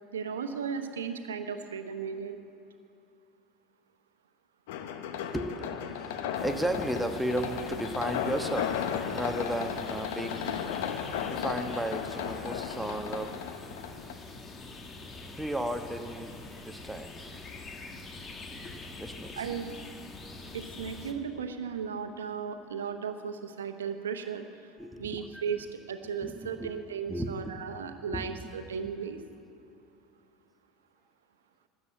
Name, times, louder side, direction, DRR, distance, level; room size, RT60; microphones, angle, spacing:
voice 1, 0.1-2.4 19.4-19.7 20.5-24.7 25.0-29.2, right 6 dB, 85° right, 8 dB, 0.9 m, -36 dB
sound 1, 4.7-14.1, left 8 dB, 70° left, 0.8 m, -35 dB
voice 2, 5.1-13.5 15.4-16.3 16.6-17.5 17.8-19.5 24.8-25.4 26.2-26.7 27.1-27.6 28.1-28.4, right 1 dB, 5° right, 6 dB, 1.1 m, -35 dB
sound 2, 6.3-21.1, left 3 dB, 30° left, 1.5 m, -45 dB
13.0 x 8.2 x 8.5 m, 2.6 s
hypercardioid pair, 75°, 0 cm